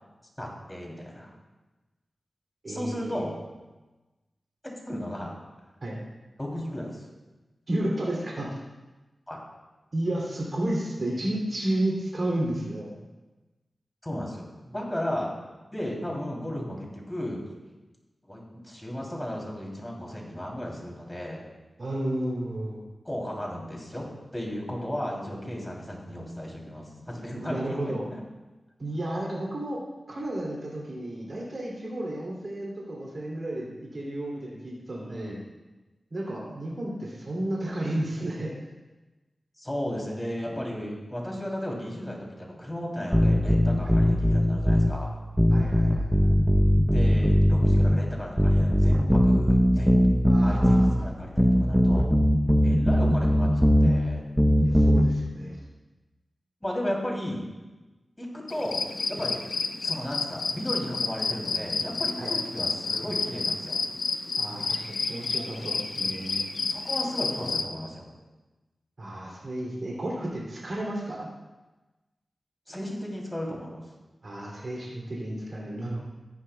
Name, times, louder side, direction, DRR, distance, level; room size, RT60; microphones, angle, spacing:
voice 1, 0.4-1.3 2.7-3.4 4.6-5.3 6.4-7.1 9.3-9.4 14.0-15.3 15.7-17.4 18.3-21.4 23.0-24.0 24.3-28.2 35.1-35.4 39.6-45.1 46.9-52.2 52.4-54.2 56.6-57.4 58.2-59.3 59.8-63.8 66.7-68.1 72.7-73.8, equal, 15° left, -2 dB, 3.0 m, -35 dB
voice 2, 2.6-3.2 5.8-5.9 7.7-8.5 9.9-13.0 21.8-22.8 27.3-28.1 28.8-29.8 30.1-35.4 36.1-38.7 43.8-44.0 45.5-46.3 50.2-51.1 54.6-55.6 62.2-62.3 64.4-66.5 69.0-71.3 74.2-76.0, right 1 dB, 60° right, -4 dB, 2.7 m, -32 dB
sound 1, 43.1-44.9 45.4-48.0 48.4-50.9 51.4-53.9 54.4-55.0, equal, 5° right, 0.8 m, -20 dB
sound 2, 58.5-67.6, left 4 dB, 85° left, 0.6 m, -30 dB
14.0 x 10.5 x 2.3 m, 1.1 s
cardioid pair, 50°, 0 cm